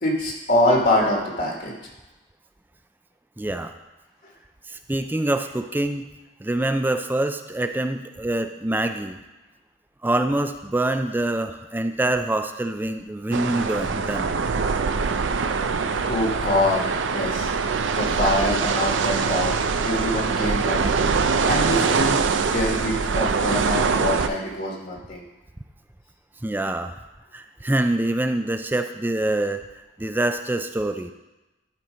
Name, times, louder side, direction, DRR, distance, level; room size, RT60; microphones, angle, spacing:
voice 1, 0.0-1.7 16.1-19.6 19.8-25.2, left 1 dB, 50° left, -1 dB, 1.5 m, -25 dB
voice 2, 3.4-3.7 4.7-6.1 6.4-9.2 10.0-14.4 26.4-26.9 27.3-29.6 30.0-31.1, right 1 dB, 10° right, 7 dB, 0.4 m, -25 dB
sound 1, 13.3-24.3, right 5 dB, 75° right, 0.5 m, -23 dB
11.5 x 4.4 x 5.1 m, 1.0 s
head